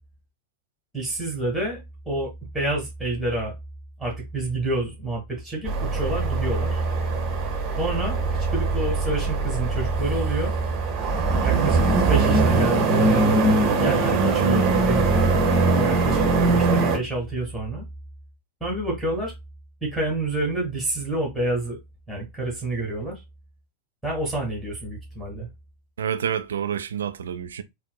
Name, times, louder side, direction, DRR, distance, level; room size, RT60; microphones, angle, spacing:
voice 1, 0.9-3.5 4.0-6.8 7.8-8.2 8.5-10.5 11.4-15.3 15.6-17.8 18.6-19.3 19.8-21.8 22.1-23.2 24.0-25.5, right 2 dB, ahead, 1.4 m, -28 dB
sound 1, 5.7-17.0, right 3 dB, 35° right, 0.9 m, -21 dB
voice 2, 26.0-27.6, right 8 dB, 65° right, 0.3 m, -28 dB
4.0 x 2.1 x 2.2 m
figure-of-eight pair, 90°, 0 cm